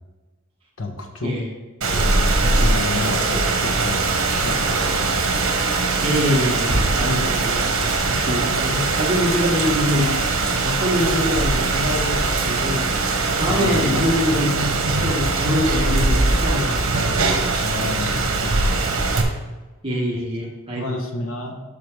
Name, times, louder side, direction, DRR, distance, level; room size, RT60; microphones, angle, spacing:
voice 1, 0.8-1.3 2.4-5.3 7.7-8.1 13.5-14.0 17.6-19.0 20.8-21.5, left 2 dB, 70° left, 3 dB, 1.2 m, -30 dB
Rain, 1.8-19.2, right 3 dB, 65° right, 1.3 m, -21 dB
voice 2, 6.0-7.8 8.1-10.3 10.6-12.9 13.4-14.7 15.0-17.2 19.8-20.9, equal, 25° right, -3 dB, 1.7 m, -24 dB
12.5 x 4.9 x 3.4 m, 1.2 s
head